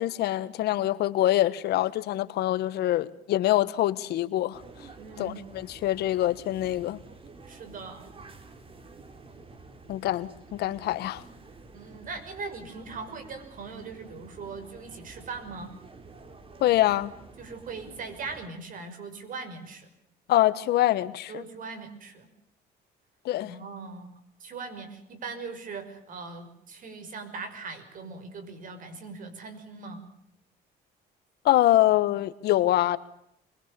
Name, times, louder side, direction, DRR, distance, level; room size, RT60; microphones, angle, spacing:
voice 1, 0.0-4.6 5.2-7.0 9.9-11.2 16.6-17.1 20.3-21.4 23.2-23.5 31.4-33.0, left 14 dB, 75° left, 15 dB, 1.4 m, -25 dB
sound 1, 4.5-18.5, right 3 dB, 35° right, 3.7 m, -50 dB
voice 2, 5.0-5.4 7.5-8.1 11.7-15.7 17.4-19.9 21.3-22.3 23.4-30.0, right 4 dB, 55° right, 9 dB, 5.9 m, -40 dB
25.0 x 22.5 x 7.0 m, 0.73 s
cardioid pair, 110°, 17 cm